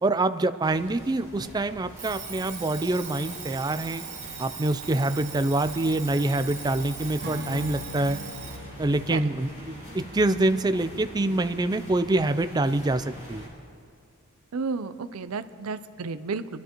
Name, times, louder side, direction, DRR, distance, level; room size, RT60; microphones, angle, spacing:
voice 1, 0.0-4.0 4.4-8.2 8.8-13.5, right 2 dB, 20° right, 11 dB, 0.4 m, -26 dB
sound 1, 0.6-13.5, equal, 35° left, 4.0 m, -44 dB
Alarm, 2.0-8.7, right 6 dB, 35° right, 1.9 m, -40 dB
Acoustic guitar / Strum, 7.2-10.6, left 1 dB, 55° right, 1.2 m, -41 dB
voice 2, 14.5-16.6, right 4 dB, 85° right, 11 dB, 0.5 m, -32 dB
23.5 x 12.5 x 3.0 m, 2.2 s
head